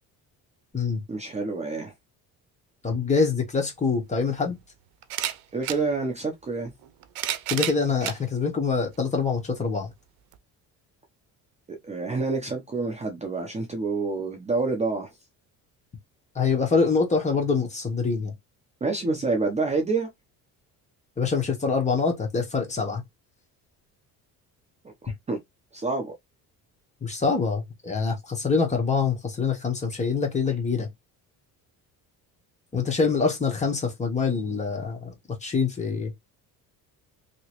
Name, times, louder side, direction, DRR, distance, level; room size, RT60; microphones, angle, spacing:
voice 1, 1.1-1.9 5.5-6.7 11.7-15.1 18.8-20.1 25.0-25.4 25.7-26.1, right 3 dB, 20° right, 0.7 m, -28 dB
voice 2, 2.8-4.6 7.5-9.9 16.3-18.3 21.2-23.0 27.0-30.9 32.7-35.1 35.4-36.1, left 5 dB, 20° left, 1.0 m, -25 dB
sound 1, 3.6-3.7 5.0-5.8 6.8-8.2 8.9-9.0 10.3-10.4, right 12 dB, 85° right, 0.6 m, -30 dB
3.0 x 2.9 x 2.9 m
cardioid pair, 150°, 36 cm